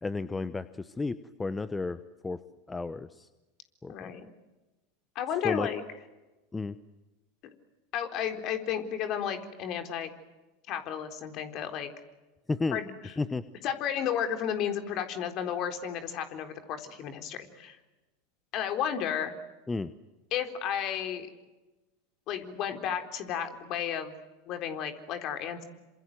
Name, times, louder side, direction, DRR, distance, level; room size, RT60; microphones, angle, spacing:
voice 1, 0.0-2.4 2.7-3.3 3.8-4.1 5.4-5.7 6.5-6.8 12.5-12.8 13.2-13.4 19.7-19.9, left 3 dB, 15° left, 14 dB, 1.0 m, -32 dB
voice 2, 3.9-4.3 5.2-5.8 7.9-10.1 10.7-11.9 12.7-13.1 13.6-17.8 18.5-19.3 20.3-21.3 22.3-24.2 24.5-25.6, left 9 dB, 45° left, 7 dB, 3.9 m, -33 dB
28.0 x 26.5 x 7.8 m, 1.1 s
hypercardioid pair, 85°, 0 cm